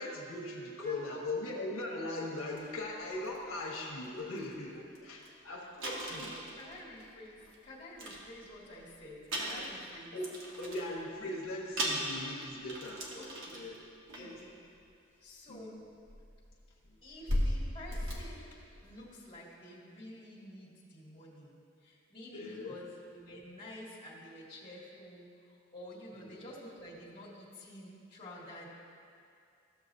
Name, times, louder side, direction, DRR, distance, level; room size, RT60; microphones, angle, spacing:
voice 1, 0.0-6.3 10.1-10.3 10.6-13.1 13.5-13.8 14.2-14.4 15.5-15.8 16.9-17.0 22.3-22.8 26.1-26.4, left 2 dB, 80° left, -3 dB, 1.3 m, -40 dB
voice 2, 0.8-1.2 5.9-10.2 11.1-11.4 13.1-13.7 14.2-14.6 15.2-15.8 17.0-21.5 21.8-25.3 25.7-28.7, left 1 dB, 25° left, -8 dB, 2.0 m, -49 dB
sound 1, 2.6-2.7 3.1-3.4 4.0-4.1 4.4-4.5 4.9-5.0 5.2-5.3 5.8-7.5 7.9-8.8 9.2-11.0 11.4-11.5 11.8-13.8 14.1-14.4 15.5-15.6 16.1-19.1, equal, 65° right, 1.4 m, -37 dB
14.5 x 7.0 x 2.7 m, 2.4 s
head